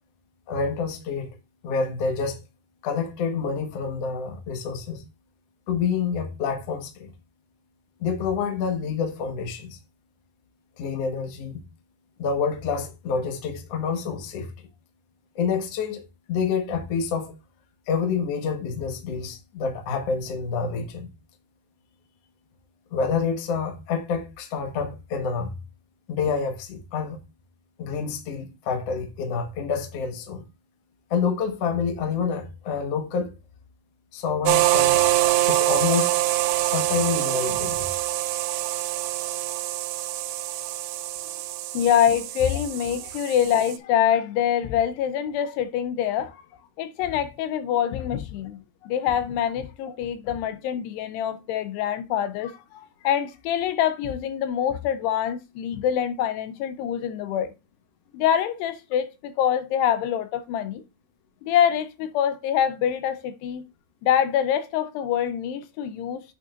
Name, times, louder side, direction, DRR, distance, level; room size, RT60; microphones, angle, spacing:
voice 1, 0.5-1.4 1.6-2.4 2.8-5.0 5.7-7.1 8.0-9.8 10.8-11.6 12.2-14.7 15.3-17.3 17.9-21.1 22.9-25.5 26.1-27.2 27.8-30.5 31.1-33.3 34.1-35.0 35.4-36.2 36.6-37.9, left 5 dB, 60° left, 1.6 m, -28 dB
sound 1, 34.5-43.8, right 15 dB, 85° right, 2.6 m, -25 dB
voice 2, 41.7-46.4 46.8-57.5 58.1-60.8 61.4-63.6 64.0-66.2, left 9 dB, 85° left, 2.7 m, -25 dB
8.3 x 6.2 x 2.5 m
omnidirectional pair, 4.8 m